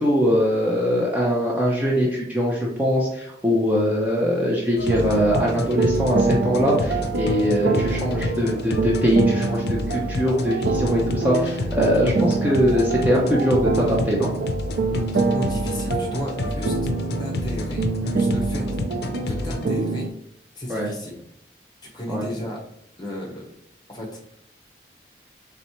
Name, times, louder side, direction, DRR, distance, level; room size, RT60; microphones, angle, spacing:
voice 1, 0.0-14.3 20.7-20.9 22.1-22.3, equal, 10° right, -4 dB, 0.6 m, -22 dB
sound 1, 4.8-19.7, left 2 dB, 65° left, 0.5 m, -29 dB
sound 2, 4.9-20.1, right 3 dB, 80° right, 0.4 m, -26 dB
voice 2, 14.9-16.8 17.2-18.7 19.2-20.1 20.5-21.2 21.9-22.6 23.0-23.5 23.9-24.2, left 1 dB, 25° left, -1 dB, 0.9 m, -33 dB
4.2 x 3.2 x 3.0 m, 0.75 s
head